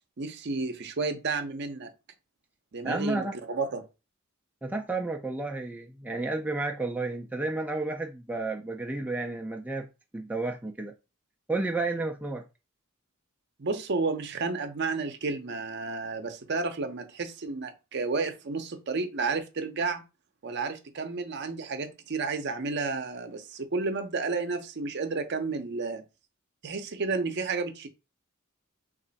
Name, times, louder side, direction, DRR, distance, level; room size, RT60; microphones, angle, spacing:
voice 1, 0.2-1.9 2.7-3.8 13.6-20.0 20.4-26.0 26.6-27.9, right 4 dB, 55° right, 0.6 m, -31 dB
voice 2, 2.8-3.3 4.6-9.9 10.1-10.9 11.5-12.4, right 2 dB, 5° right, 0.3 m, -31 dB
3.2 x 2.4 x 3.9 m
head